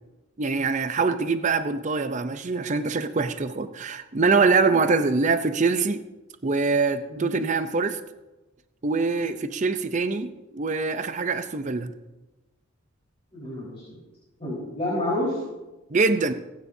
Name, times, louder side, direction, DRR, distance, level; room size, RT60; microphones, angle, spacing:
voice 1, 0.4-6.0 6.4-8.0 8.8-11.9 15.9-16.3, right 4 dB, 35° right, 10 dB, 0.6 m, -24 dB
voice 2, 13.3-14.0 14.4-15.4, left 1 dB, 30° left, -6 dB, 4.2 m, -29 dB
28.0 x 9.5 x 2.7 m, 1.1 s
head